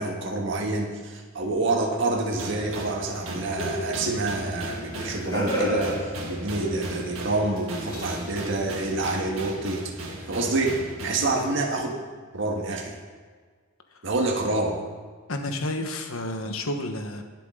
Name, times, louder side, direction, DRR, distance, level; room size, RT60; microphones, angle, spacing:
voice 1, 0.0-6.0 6.3-12.0 12.3-13.0 14.0-14.8, right 2 dB, 60° right, 1 dB, 1.7 m, -27 dB
sound 1, 2.4-11.3, right 1 dB, 80° right, 1.8 m, -37 dB
sound 2, 3.6-7.0 7.7-8.4 10.2-10.3, equal, 20° left, 2.0 m, -32 dB
voice 2, 11.2-11.5 15.3-17.2, left 1 dB, 80° left, 5 dB, 1.3 m, -31 dB
22.0 x 7.6 x 3.9 m, 1.5 s
head